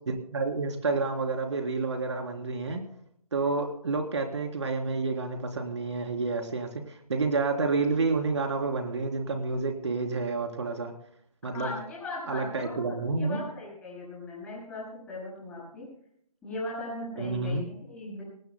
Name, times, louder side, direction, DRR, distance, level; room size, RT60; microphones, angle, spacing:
voice 1, 0.1-2.8 3.3-10.9 11.4-11.7 12.3-13.4 17.2-17.7, right 3 dB, 50° right, 4 dB, 3.5 m, -29 dB
voice 2, 11.4-15.9 16.4-18.2, left 2 dB, 5° left, -6 dB, 7.2 m, -38 dB
24.5 x 18.5 x 2.2 m, 0.68 s
figure-of-eight pair, 160°, 19 cm